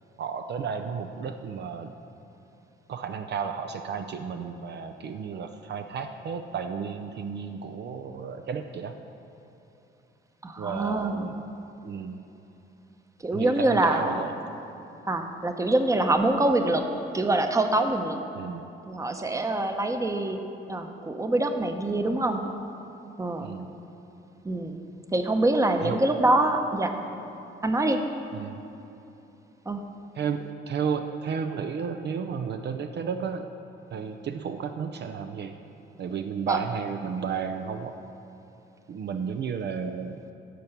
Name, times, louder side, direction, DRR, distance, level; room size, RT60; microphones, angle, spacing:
voice 1, 0.2-1.9 2.9-8.9 10.6-11.4 11.8-12.2 13.3-14.3 18.3-18.7 23.4-23.7 25.8-26.0 28.3-28.6 30.1-33.5 33.9-35.5 36.0-37.9 38.9-40.2, right 6 dB, 55° right, 6 dB, 0.5 m, -33 dB
voice 2, 10.4-11.2 13.2-14.2 15.1-16.8 17.1-18.2 18.9-20.4 20.7-22.4 23.2-23.5 24.4-24.8 25.1-26.9 27.6-28.0 29.7-29.8 36.5-36.6, right 2 dB, 15° right, 6 dB, 0.8 m, -25 dB
13.0 x 4.6 x 6.7 m, 2.9 s
cardioid pair, 80°, 21 cm